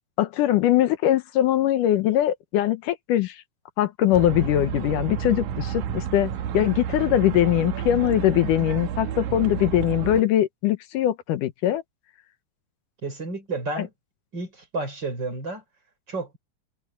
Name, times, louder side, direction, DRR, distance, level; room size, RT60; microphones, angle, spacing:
voice 1, 0.2-3.4 3.8-11.8 13.8-13.9, left 12 dB, 80° left, 2.5 m, -22 dB
sound 1, 4.1-10.2, right 9 dB, 75° right, 2.5 m, -30 dB
voice 2, 13.0-13.9 14.3-15.6 16.1-16.4, right 3 dB, 30° right, 6.1 m, -31 dB
omnidirectional pair, 3.7 m